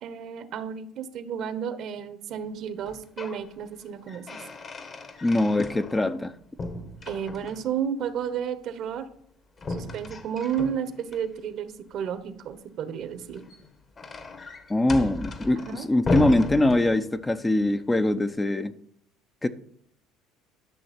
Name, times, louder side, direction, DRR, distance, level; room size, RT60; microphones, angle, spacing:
voice 1, 0.0-4.4 7.1-9.1 9.7-13.4 15.0-15.1 15.6-15.9, right 8 dB, 60° right, 1.2 m, -32 dB
sound 1, 2.8-3.4 3.8-6.3 6.6-7.8 9.6-11.2 13.2-17.4, left 3 dB, 35° left, 1.3 m, -35 dB
voice 2, 5.2-6.3 14.7-18.7 19.4-19.5, left 1 dB, 15° left, 0.7 m, -23 dB
11.5 x 6.2 x 4.4 m
supercardioid pair, 90°, 0 cm